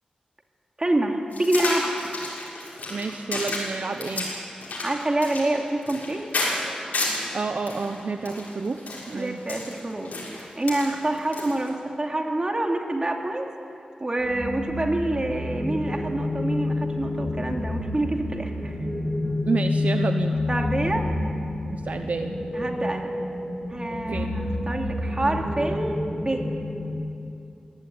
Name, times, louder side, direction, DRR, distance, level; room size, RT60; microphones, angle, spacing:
voice 1, 0.8-2.1 4.8-6.3 9.1-13.5 14.0-18.7 20.5-21.1 22.5-23.1 23.7-26.5, right 1 dB, 30° right, 2 dB, 2.8 m, -27 dB
sound 1, 1.3-7.3 7.7-11.7, left 2 dB, 80° left, 6.6 m, -31 dB
voice 2, 2.9-4.3 7.3-9.4 19.5-20.4 21.7-22.3 24.1-24.3, right 4 dB, 65° right, 6 dB, 1.0 m, -29 dB
sound 2, 14.2-26.9, left 2 dB, 30° left, 5.5 m, -29 dB
21.5 x 17.0 x 9.6 m, 2.7 s
wide cardioid pair, 65°, 3 cm